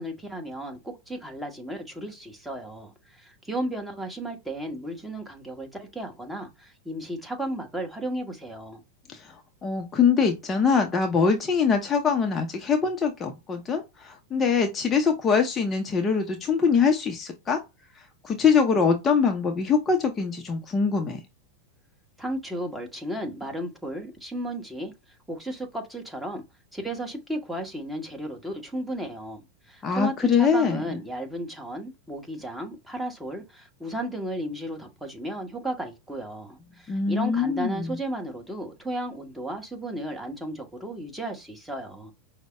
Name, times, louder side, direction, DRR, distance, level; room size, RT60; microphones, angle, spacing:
voice 1, 0.0-8.8 22.2-24.9 25.3-26.4 26.7-42.1, right 1 dB, 5° right, 1.2 m, -34 dB
voice 2, 9.1-17.6 17.9-21.2 29.8-30.8 36.9-38.0, left 5 dB, 25° left, 0.7 m, -23 dB
5.2 x 2.1 x 3.5 m
figure-of-eight pair, 90°, 0 cm